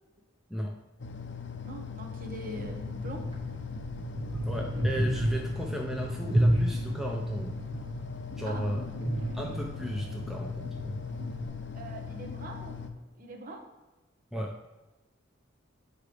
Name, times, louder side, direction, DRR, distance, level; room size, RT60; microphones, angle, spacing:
sound 1, 1.0-12.9, left 6 dB, 65° left, 0.5 m, -40 dB
voice 1, 1.6-3.2 8.4-8.6 11.7-12.8 13.2-13.7, right 1 dB, 45° right, 2 dB, 0.9 m, -42 dB
sound 2, 2.5-11.5, right 1 dB, 30° right, 1.2 m, -32 dB
voice 2, 4.5-7.6 8.4-8.8 9.3-11.0 14.3-14.5, equal, ahead, -1 dB, 0.6 m, -35 dB
6.6 x 4.7 x 3.3 m, 1.1 s
head